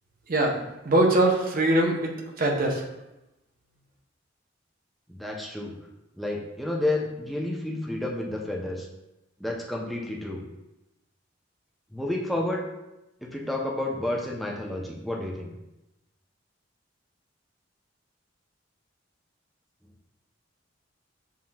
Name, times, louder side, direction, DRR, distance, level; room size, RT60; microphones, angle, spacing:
voice 1, 0.3-2.8, right 1 dB, 50° right, 1 dB, 0.7 m, -23 dB
voice 2, 5.1-5.8 6.2-8.9 9.4-10.4 11.9-12.6 13.2-15.5, left 1 dB, ahead, -2 dB, 0.6 m, -30 dB
7.2 x 2.9 x 2.2 m, 0.95 s
head